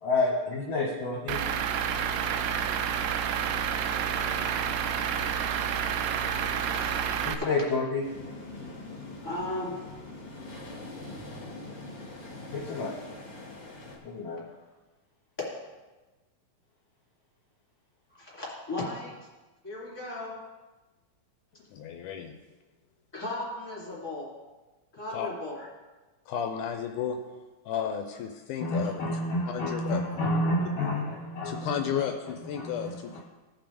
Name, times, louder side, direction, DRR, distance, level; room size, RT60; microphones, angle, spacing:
voice 1, 0.0-1.4 7.3-8.0 12.5-13.0 14.0-14.4 28.6-32.0 32.5-33.2, left 2 dB, 60° left, -4 dB, 2.0 m, -29 dB
Truck / Idling, 1.3-7.3, right 8 dB, 85° right, 2.2 m, -29 dB
voice 2, 6.2-6.9 7.4-7.5 9.2-9.8 18.2-19.1 19.6-20.4 23.1-24.3 25.0-25.7, left 2 dB, 10° left, -6 dB, 2.9 m, -36 dB
sound 1, 8.0-14.0, left 2 dB, 30° left, 2.1 m, -43 dB
voice 3, 21.7-22.4 25.1-25.3 26.3-27.2 27.7-28.9 29.5-30.0 30.8-30.9 31.4-33.2, left 8 dB, 80° left, 5 dB, 2.1 m, -33 dB
17.0 x 5.9 x 3.5 m, 1.2 s
omnidirectional pair, 3.7 m